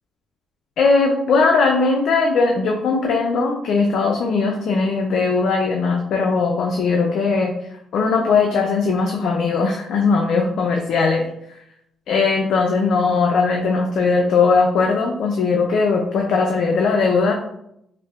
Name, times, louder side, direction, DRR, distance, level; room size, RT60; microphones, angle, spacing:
voice 1, 0.8-7.5 7.9-11.2 12.1-17.3, left 4 dB, 70° left, 2 dB, 0.4 m, -19 dB
4.4 x 2.1 x 2.3 m, 0.76 s
cardioid pair, 90°, 0 cm